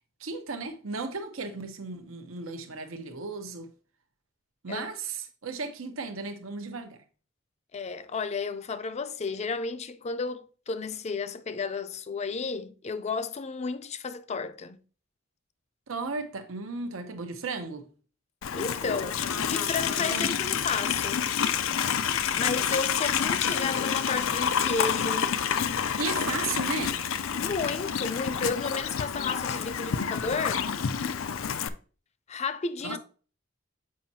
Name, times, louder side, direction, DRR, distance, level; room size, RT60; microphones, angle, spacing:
voice 1, 0.2-3.7 4.6-7.0 15.9-17.9 20.1-20.3 26.0-27.0 32.8-33.0, right 4 dB, 90° right, 0.8 m, -35 dB
voice 2, 7.7-14.8 18.5-21.3 22.3-25.4 27.4-30.7 32.3-33.0, left 4 dB, 35° left, 0.4 m, -32 dB
Livestock farm animals working animals, 18.4-31.7, left 7 dB, 85° left, 0.5 m, -28 dB
7.5 x 5.3 x 2.7 m
head